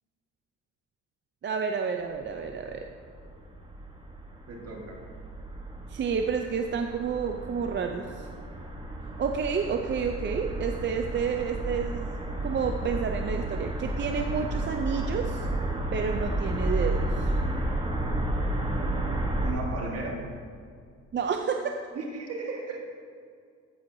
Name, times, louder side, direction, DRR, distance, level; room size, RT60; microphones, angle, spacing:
voice 1, 1.4-2.9 5.9-8.3 9.2-12.1 12.4-15.5 15.9-17.3 21.1-21.6, right 6 dB, 40° right, 5 dB, 0.5 m, -30 dB
sound 1, 2.1-19.5, right 1 dB, 15° right, 1.1 m, -32 dB
voice 2, 4.5-5.0 19.4-20.2 21.9-22.8, right 3 dB, 55° right, 0 dB, 1.7 m, -35 dB
9.8 x 9.3 x 2.7 m, 2.2 s
cardioid pair, 90°, 30 cm